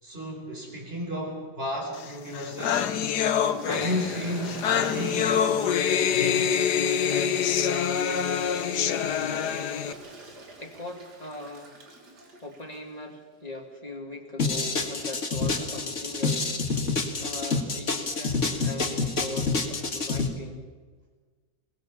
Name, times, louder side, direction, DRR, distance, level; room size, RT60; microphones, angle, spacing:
voice 1, 0.0-2.9 3.6-6.7, equal, 35° right, 1 dB, 4.8 m, -34 dB
sound 1, 2.1-2.2 2.3-9.9, left 8 dB, 70° left, 1.5 m, -26 dB
Toilet flush, 3.5-12.8, right 2 dB, 70° right, 3.2 m, -41 dB
voice 2, 10.6-11.8 12.4-16.6 17.2-20.7, left 2 dB, 20° left, 3 dB, 2.5 m, -40 dB
sound 2, 14.4-20.3, left 3 dB, 45° left, 2.2 m, -27 dB
22.0 x 19.5 x 7.2 m, 1.4 s
omnidirectional pair, 1.8 m